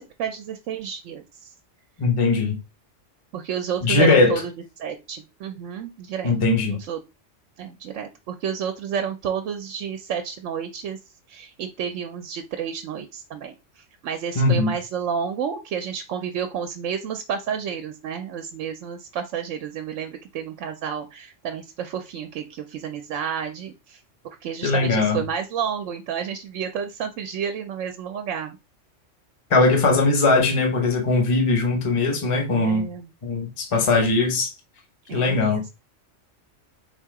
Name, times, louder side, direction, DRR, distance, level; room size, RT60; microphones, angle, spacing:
voice 1, 0.0-1.5 3.3-4.5 4.8-6.3 6.7-7.0 7.6-11.0 11.3-24.0 24.4-28.6 32.5-33.1 35.1-35.7, right 7 dB, 75° right, 0.9 m, -31 dB
voice 2, 2.0-2.6 3.8-4.4 6.2-6.8 14.4-14.7 24.6-25.2 29.5-32.9 33.2-34.5 35.1-35.6, left 3 dB, 30° left, 0.8 m, -20 dB
3.9 x 2.7 x 4.7 m
omnidirectional pair, 1.3 m